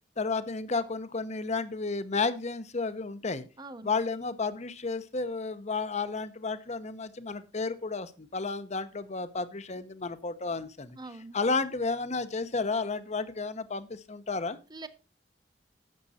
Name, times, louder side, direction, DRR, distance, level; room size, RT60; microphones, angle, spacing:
voice 1, 0.2-3.4 3.8-11.0 11.3-14.6, left 4 dB, 40° left, 0.9 m, -32 dB
voice 2, 3.6-3.9 11.0-11.4 14.7-14.9, right 2 dB, 25° right, 0.9 m, -43 dB
12.0 x 7.8 x 4.2 m
head